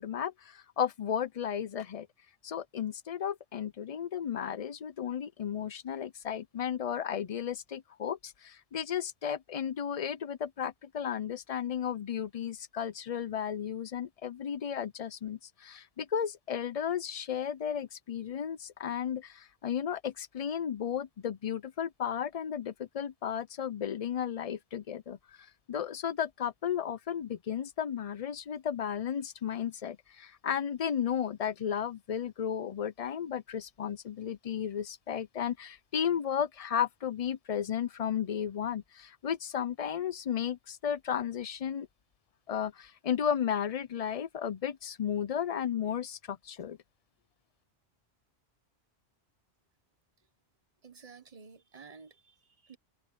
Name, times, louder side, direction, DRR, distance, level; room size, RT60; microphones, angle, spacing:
voice 1, 0.0-2.1 2.4-41.9 42.5-46.8, left 8 dB, 50° left, 0.5 m, -34 dB
voice 2, 50.8-52.8, right 5 dB, 35° right, 1.2 m, -52 dB
omnidirectional pair, 1.1 m